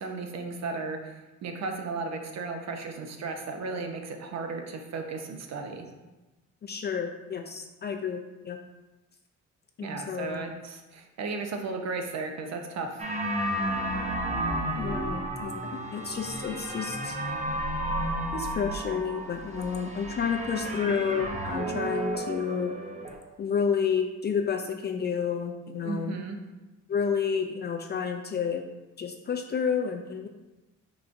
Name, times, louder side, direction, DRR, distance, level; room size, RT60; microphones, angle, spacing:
voice 1, 0.0-5.8 9.8-13.0 25.8-26.4, right 4 dB, 60° right, 4 dB, 0.7 m, -35 dB
voice 2, 6.6-8.6 9.8-10.5 14.4-17.2 18.3-22.7 23.4-26.1 26.9-28.6 29.0-30.3, left 6 dB, 35° left, 3 dB, 0.4 m, -30 dB
sound 1, 13.0-23.2, right 1 dB, 25° right, 0.7 m, -32 dB
4.5 x 3.9 x 2.5 m, 1.1 s
cardioid pair, 90°, 30 cm